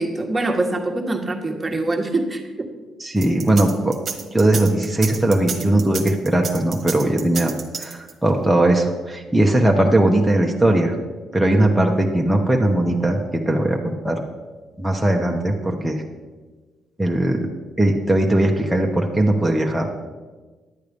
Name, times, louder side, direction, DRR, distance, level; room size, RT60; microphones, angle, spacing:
voice 1, 0.0-2.7, right 2 dB, 20° right, 2 dB, 1.5 m, -24 dB
voice 2, 3.0-4.0 4.3-7.5 7.8-11.0 11.3-14.2 14.8-16.0 17.0-17.5 17.8-19.9, right 1 dB, 5° right, 0 dB, 1.0 m, -19 dB
sound 1, 3.2-8.3, right 6 dB, 50° right, 1.2 m, -30 dB
11.0 x 8.0 x 5.2 m, 1.3 s
cardioid pair, 90°, 0 cm